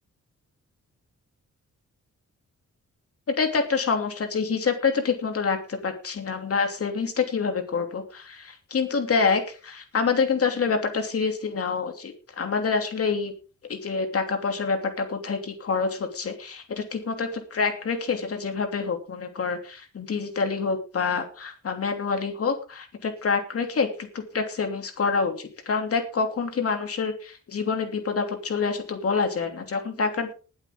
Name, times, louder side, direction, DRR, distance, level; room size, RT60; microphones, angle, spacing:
voice 1, 3.4-13.3 13.7-30.3, left 5 dB, 50° left, 5 dB, 2.9 m, -27 dB
19.5 x 8.2 x 3.8 m, 0.36 s
wide cardioid pair, 150°, 29 cm